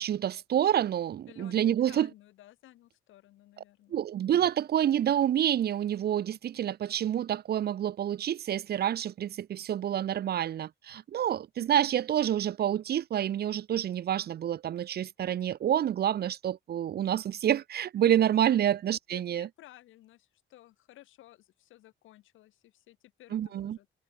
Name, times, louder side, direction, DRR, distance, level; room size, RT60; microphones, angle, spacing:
voice 1, 0.0-2.1 3.9-19.5 23.3-23.8, right 10 dB, 55° right, 0.6 m, -28 dB
voice 2, 1.3-4.0 18.4-18.6 19.1-23.9, left 15 dB, 85° left, 2.8 m, -55 dB
cardioid pair, 90°, 20 cm